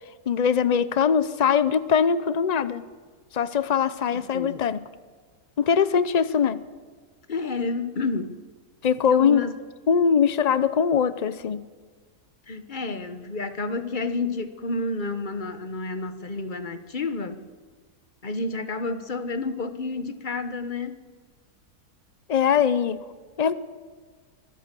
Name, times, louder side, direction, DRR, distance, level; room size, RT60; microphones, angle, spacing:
voice 1, 0.3-2.8 3.3-4.8 5.6-6.6 8.8-9.4 9.9-11.7 22.3-23.0 23.4-23.5, left 7 dB, 90° left, 15 dB, 0.3 m, -22 dB
voice 2, 4.1-4.6 7.3-8.4 9.0-9.5 12.5-17.4 18.2-21.0, left 3 dB, 35° left, 10 dB, 1.2 m, -30 dB
24.0 x 14.5 x 7.6 m, 1.5 s
omnidirectional pair, 1.7 m